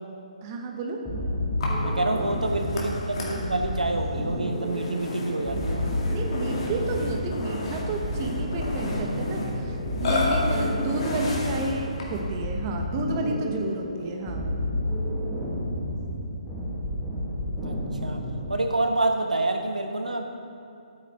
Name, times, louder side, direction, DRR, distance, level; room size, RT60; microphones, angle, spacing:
voice 1, 0.4-1.0 6.0-14.5, right 2 dB, 30° right, 2 dB, 0.9 m, -31 dB
sound 1, 1.1-18.7, left 1 dB, ahead, 1.6 m, -30 dB
Burping eructation, 1.6-12.3, left 2 dB, 50° left, 2.1 m, -33 dB
voice 2, 1.8-5.9 17.6-17.7 18.0-18.2 18.5-20.2, right 2 dB, 85° right, 4 dB, 1.1 m, -27 dB
12.0 x 9.1 x 3.6 m, 2.5 s
figure-of-eight pair, 140°, 4 cm